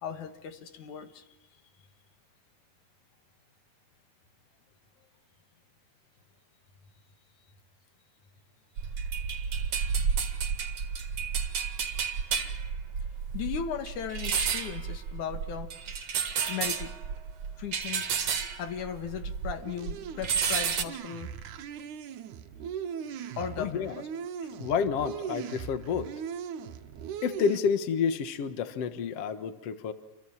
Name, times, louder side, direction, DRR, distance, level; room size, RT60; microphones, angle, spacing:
voice 1, 0.0-1.2 13.3-15.7 16.5-16.9 17.6-18.1 18.6-21.4 23.4-24.0, left 8 dB, 85° left, 7 dB, 3.2 m, -37 dB
sound 1, 8.8-19.6 19.9-20.8, right 6 dB, 60° right, 2.9 m, -31 dB
sound 2, 19.6-27.6, right 8 dB, 85° right, 2.6 m, -39 dB
voice 2, 23.6-23.9 24.6-26.1 27.2-29.9, left 6 dB, 60° left, 9 dB, 2.3 m, -29 dB
29.0 x 24.0 x 7.3 m, 1.0 s
omnidirectional pair, 3.4 m